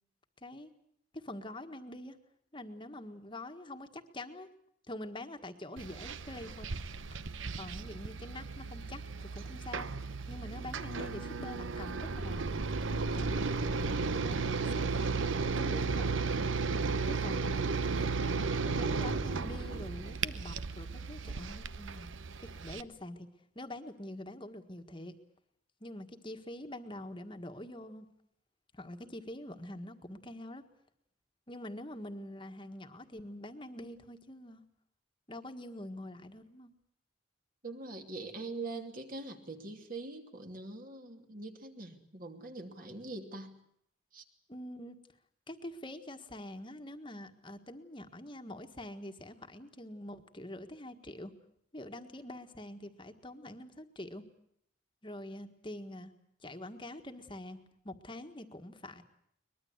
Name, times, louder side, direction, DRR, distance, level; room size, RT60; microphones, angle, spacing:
voice 1, 1.1-2.2 2.5-4.5 4.9-6.7 7.1-7.2 7.6-9.9 10.3-12.5 12.9-13.5 14.1-16.2 17.1-17.7 18.2-22.1 22.6-23.3 23.5-25.1 25.8-28.1 28.7-30.6 31.5-34.6 35.3-36.7 44.5-44.9 45.5-51.3 51.7-54.2 55.0-56.1 56.4-57.6 57.8-59.0, left 1 dB, 25° left, 7 dB, 1.6 m, -45 dB
sound 1, 5.8-22.8, right 4 dB, 75° right, 0.9 m, -34 dB
voice 2, 37.6-43.5 44.1-44.2, right 2 dB, 45° right, 5 dB, 2.7 m, -43 dB
23.0 x 21.0 x 8.1 m, 0.71 s
head